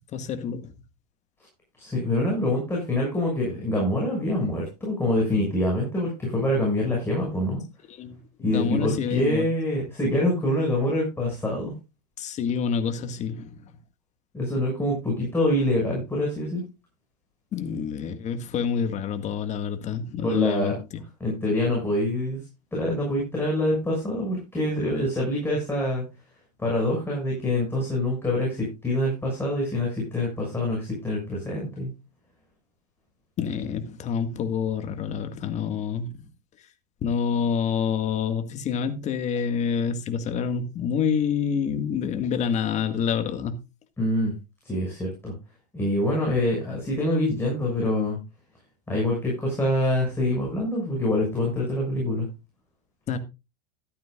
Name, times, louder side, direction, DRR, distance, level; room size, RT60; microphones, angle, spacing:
voice 1, 0.1-0.7 7.9-9.5 12.2-13.6 17.5-21.0 33.4-36.3 37.0-43.5 53.1-53.2, left 7 dB, 35° left, 1.8 m, -27 dB
voice 2, 1.8-7.6 8.4-11.7 14.3-16.6 20.2-20.8 21.2-22.4 22.7-26.0 26.6-31.9 44.0-44.3 44.6-45.3 45.7-48.2 48.9-52.3, left 1 dB, 10° left, 6.4 m, -25 dB
14.0 x 11.5 x 2.4 m
hypercardioid pair, 100°, 21 cm